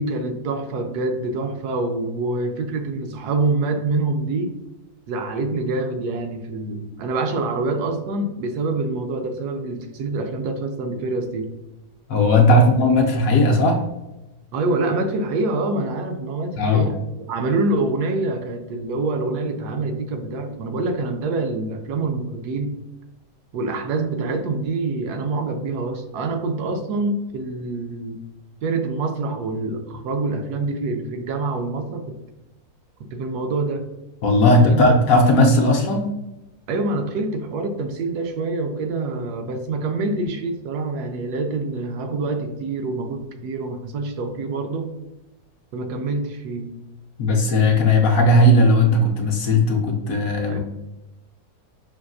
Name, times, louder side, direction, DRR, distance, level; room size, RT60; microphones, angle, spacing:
voice 1, 0.0-4.5 5.1-11.5 12.5-12.8 14.5-17.0 17.3-22.7 23.5-28.2 28.6-32.2 33.0-33.9 34.4-34.9 36.7-44.9 45.7-46.8 50.5-50.6, right 3 dB, 75° right, 5 dB, 1.1 m, -26 dB
voice 2, 12.1-13.8 16.6-16.9 34.2-36.1 47.2-50.6, left 1 dB, 70° left, 2 dB, 0.9 m, -16 dB
5.8 x 2.5 x 2.3 m, 0.99 s
omnidirectional pair, 1.7 m